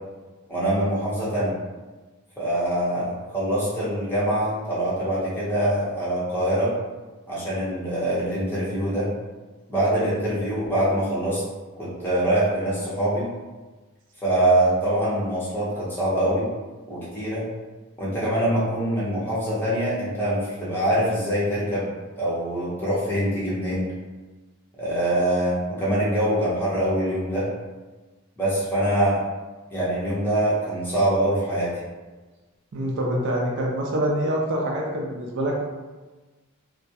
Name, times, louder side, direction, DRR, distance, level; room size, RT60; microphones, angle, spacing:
voice 1, 0.5-1.6 2.4-6.7 7.3-9.1 9.7-11.4 11.8-13.3 14.2-16.5 16.9-17.5 18.0-21.9 22.2-23.8 24.8-27.5 28.4-29.2 29.7-31.7, right 1 dB, 10° left, -9 dB, 0.7 m, -24 dB
voice 2, 32.7-35.6, right 1 dB, 55° right, -1 dB, 0.3 m, -25 dB
2.2 x 2.0 x 2.7 m, 1.2 s
head